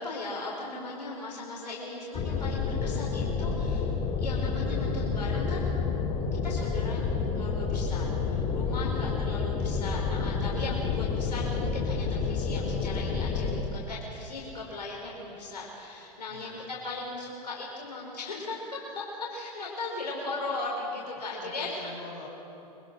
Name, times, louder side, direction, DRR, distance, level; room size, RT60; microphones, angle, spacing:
voice 1, 0.0-3.9 4.2-5.6 5.9-6.1 6.4-21.7, left 2 dB, 85° left, -3 dB, 4.9 m, -38 dB
sound 1, 2.1-13.6, left 5 dB, 30° left, 3.0 m, -29 dB
voice 2, 8.8-9.4 10.8-11.2 16.3-16.6 21.1-22.3, left 4 dB, 55° left, 0 dB, 7.1 m, -46 dB
25.5 x 24.5 x 6.4 m, 2.9 s
hypercardioid pair, 100°, 21 cm